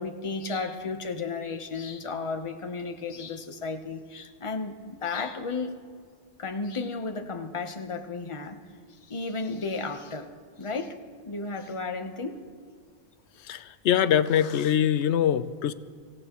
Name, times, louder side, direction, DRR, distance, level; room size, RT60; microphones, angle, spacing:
voice 1, 0.0-5.8 6.4-8.6 9.0-10.3 10.6-11.0 11.3-12.4, left 4 dB, 30° left, 6 dB, 0.9 m, -33 dB
voice 2, 13.4-15.7, left 9 dB, 85° left, 13 dB, 0.9 m, -23 dB
24.5 x 16.5 x 3.0 m, 2.1 s
omnidirectional pair, 1.1 m